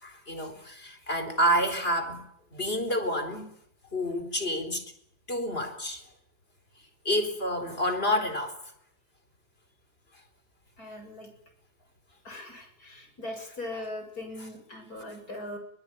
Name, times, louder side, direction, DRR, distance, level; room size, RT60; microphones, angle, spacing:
voice 1, 0.0-2.2 2.5-3.5 3.9-4.8 5.3-6.0 7.0-8.6, equal, 35° left, 4.5 m, -28 dB
voice 2, 10.8-11.3 12.2-15.6, left 1 dB, 65° left, 7.8 m, -40 dB
23.0 x 21.0 x 9.1 m
omnidirectional pair, 1.8 m